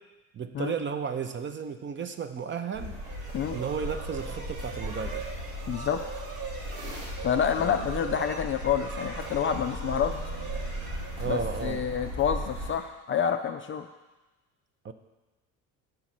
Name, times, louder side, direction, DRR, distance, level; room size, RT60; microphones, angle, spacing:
voice 1, 0.3-3.0 3.5-5.2 7.6-7.8 11.2-11.8 14.8-14.9, right 6 dB, 25° right, 9 dB, 0.6 m, -33 dB
sound 1, 2.7-12.7, equal, 85° right, 2.3 m, -37 dB
sound 2, 3.0-11.8, right 5 dB, 55° right, 1.6 m, -41 dB
voice 2, 5.7-6.0 7.2-10.1 11.3-13.9, left 8 dB, 30° left, 6 dB, 0.4 m, -28 dB
7.9 x 5.9 x 4.3 m, 1.1 s
hypercardioid pair, 65°, 42 cm